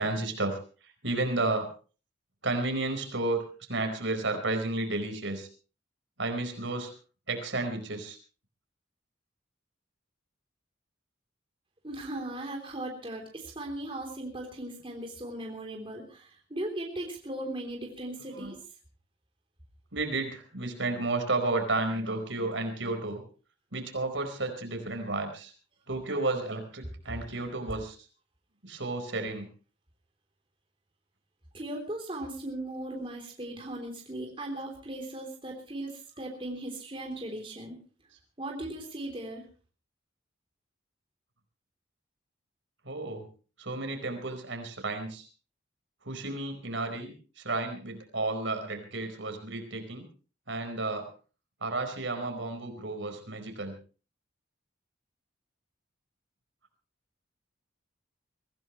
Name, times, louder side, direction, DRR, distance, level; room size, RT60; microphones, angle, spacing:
voice 1, 0.0-1.7 2.4-3.4 3.7-5.5 6.2-6.9 7.3-8.2 18.2-18.5 19.9-23.2 23.7-25.5 25.9-28.0 28.6-29.5 42.8-43.3 43.6-45.3 46.0-50.0 50.5-51.1 51.6-53.7, right 2 dB, 70° right, 5 dB, 4.6 m, -32 dB
voice 2, 11.8-18.5 31.5-37.8 38.4-39.4, right 1 dB, 25° right, 1 dB, 3.4 m, -38 dB
24.0 x 16.5 x 3.1 m, 0.37 s
head